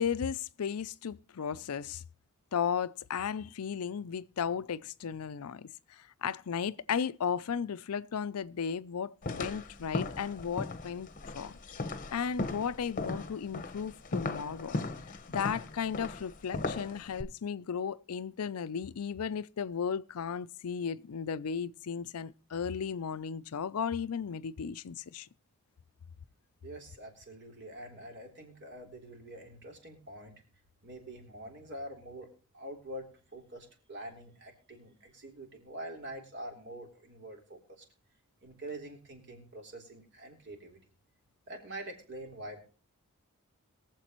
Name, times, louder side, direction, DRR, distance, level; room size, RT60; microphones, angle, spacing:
voice 1, 0.0-2.0 2.5-11.1 11.3-11.6 12.1-14.8 15.3-25.3, left 7 dB, 85° left, 0.5 m, -35 dB
sound 1, 9.2-17.2, left 2 dB, 35° left, 0.9 m, -37 dB
voice 2, 26.6-30.3 30.8-32.3 32.5-37.6 38.4-40.8 41.5-42.6, right 1 dB, 55° right, 3.4 m, -45 dB
22.5 x 7.5 x 3.0 m
head